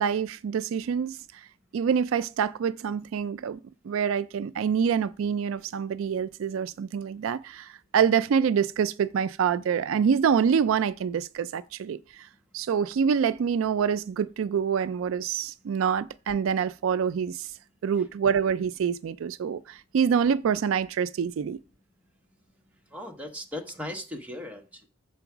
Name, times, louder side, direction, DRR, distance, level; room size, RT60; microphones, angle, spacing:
voice 1, 0.0-1.5 1.7-3.6 3.8-12.3 12.5-17.5 17.8-21.6, right 7 dB, 75° right, 0.3 m, -26 dB
voice 2, 22.9-24.9, left 1 dB, 5° right, 1.1 m, -38 dB
7.0 x 4.5 x 5.9 m
head